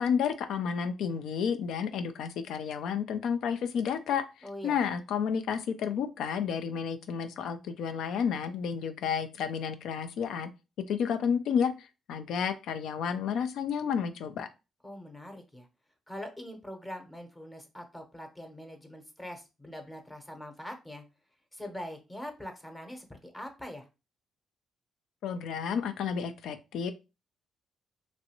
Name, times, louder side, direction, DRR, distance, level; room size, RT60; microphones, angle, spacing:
voice 1, 0.0-4.2 4.6-10.5 10.9-14.5 25.2-26.9, left 7 dB, 80° left, 9 dB, 0.3 m, -31 dB
voice 2, 4.4-4.8 14.8-15.7 16.1-21.0 21.5-23.8, left 1 dB, 15° left, 4 dB, 0.8 m, -43 dB
3.0 x 2.6 x 2.9 m, 0.28 s
cardioid pair, 90°, 0 cm